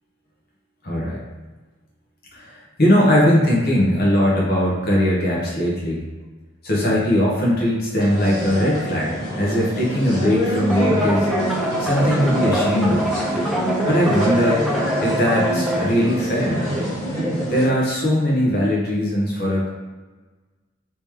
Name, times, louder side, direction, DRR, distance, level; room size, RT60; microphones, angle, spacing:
voice 1, 0.8-1.2 2.3-2.5 2.8-6.1 6.6-11.3 11.8-13.2 13.9-14.6 15.0-16.6 17.5-19.7, equal, 50° left, -4 dB, 1.0 m, -20 dB
sound 1, 8.0-17.6, equal, 15° left, 1.4 m, -25 dB
sound 2, 10.7-15.8, right 1 dB, ahead, 0.5 m, -26 dB
3.5 x 3.0 x 3.1 m, 1.3 s
head